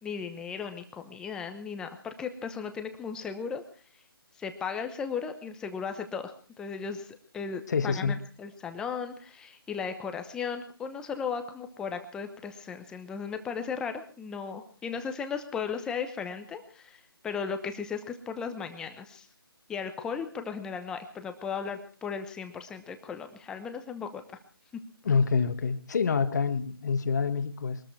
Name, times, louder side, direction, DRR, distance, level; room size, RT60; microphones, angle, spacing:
voice 1, 0.0-3.6 4.4-6.3 6.6-19.3 19.7-24.2, left 6 dB, 5° left, 7 dB, 1.0 m, -36 dB
voice 2, 7.7-8.2 25.0-27.8, left 5 dB, 45° left, 10 dB, 1.6 m, -27 dB
22.5 x 13.5 x 4.7 m, 0.39 s
hypercardioid pair, 165°, 13 cm